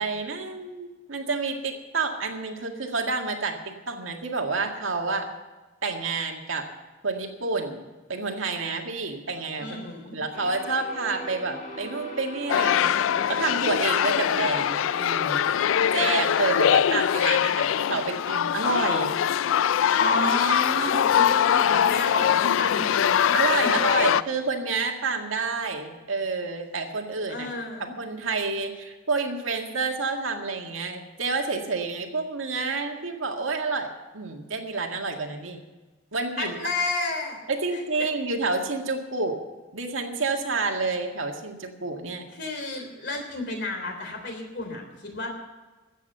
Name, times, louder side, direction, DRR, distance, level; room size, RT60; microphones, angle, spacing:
voice 1, 0.0-3.6 3.9-5.3 5.8-6.7 7.0-7.8 8.1-9.8 10.1-13.0 13.3-19.2 23.3-27.5 28.0-35.6 36.1-36.6 37.5-39.4 39.7-42.3, right 3 dB, 90° right, 2 dB, 1.9 m, -29 dB
voice 2, 9.6-10.2 20.0-23.7 27.3-27.9 36.4-37.4 37.7-37.8 42.3-45.3, left 2 dB, 60° left, 3 dB, 3.5 m, -31 dB
sound 1, 10.3-15.8, left 1 dB, 40° left, 2.1 m, -40 dB
sound 2, 12.5-24.2, left 9 dB, 80° left, 0.3 m, -23 dB
13.5 x 8.5 x 8.1 m, 1.2 s
head